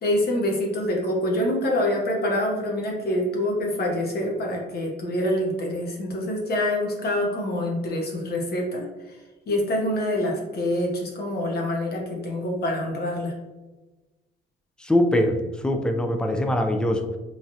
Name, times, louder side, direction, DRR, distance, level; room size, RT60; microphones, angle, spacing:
voice 1, 0.0-9.2 9.5-13.3, left 1 dB, 55° left, 0 dB, 0.9 m, -26 dB
voice 2, 14.8-15.4 15.6-17.2, left 1 dB, 5° left, 5 dB, 0.3 m, -22 dB
3.1 x 2.3 x 2.7 m, 1.1 s
cardioid pair, 90°, 20 cm